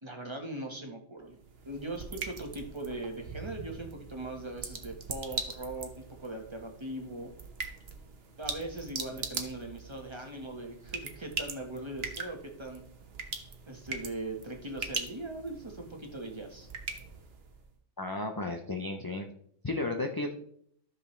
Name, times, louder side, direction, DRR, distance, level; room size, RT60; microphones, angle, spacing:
voice 1, 0.0-1.4 1.6-7.3 8.4-12.8 13.7-16.7, right 1 dB, 25° right, 2 dB, 1.3 m, -40 dB
sound 1, 1.2-17.7, right 5 dB, 55° right, 1.2 m, -41 dB
voice 2, 18.0-19.3 19.6-20.3, left 2 dB, 30° left, 4 dB, 0.4 m, -33 dB
13.0 x 6.4 x 3.2 m, 0.66 s
omnidirectional pair, 1.3 m